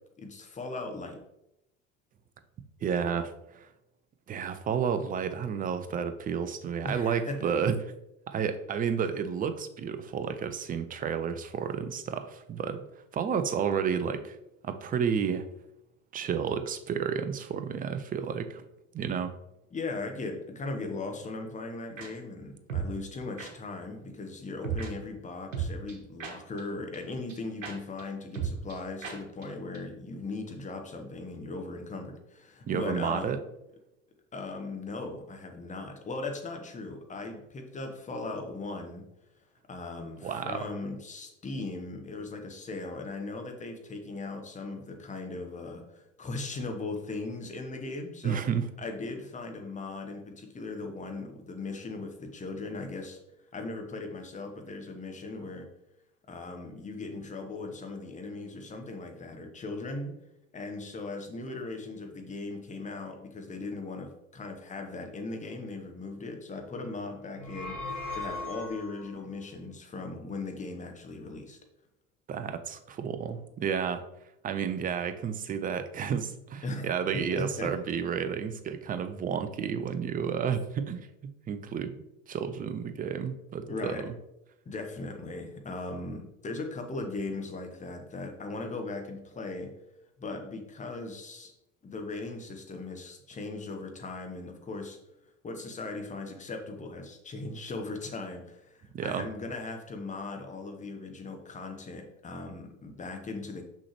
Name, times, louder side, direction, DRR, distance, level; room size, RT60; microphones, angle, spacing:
voice 1, 0.2-1.2 6.8-7.4 19.7-33.3 34.3-39.1 39.7-48.4 48.8-53.2 53.5-55.7 56.3-60.2 60.5-67.8 68.1-71.6 76.6-76.9 77.1-77.7 83.7-84.0 84.6-89.7 90.2-91.5 91.8-95.0 95.4-103.6, left 3 dB, 20° left, 4 dB, 1.1 m, -38 dB
voice 2, 2.8-3.7 4.3-7.8 8.3-12.9 13.1-14.4 14.6-15.5 16.1-18.6 18.9-19.3 32.7-33.4 40.2-40.7 48.2-48.7 72.3-74.0 74.4-81.1 81.5-84.1 98.9-99.3, right 7 dB, 20° right, 10 dB, 0.5 m, -31 dB
sound 1, 22.0-22.1 22.7-22.9 23.4-23.5 24.6-24.9 25.5-26.6 26.9-27.0 27.3-27.4 27.6-27.7 28.0-28.1 28.3-28.8 29.0-29.2 29.4-29.5 29.7-29.8, right 6 dB, 80° right, 1.2 m, -34 dB
sound 2, 67.3-69.2, left 2 dB, 70° left, 2.1 m, -38 dB
6.2 x 5.6 x 3.0 m, 0.87 s
figure-of-eight pair, 70°, 38 cm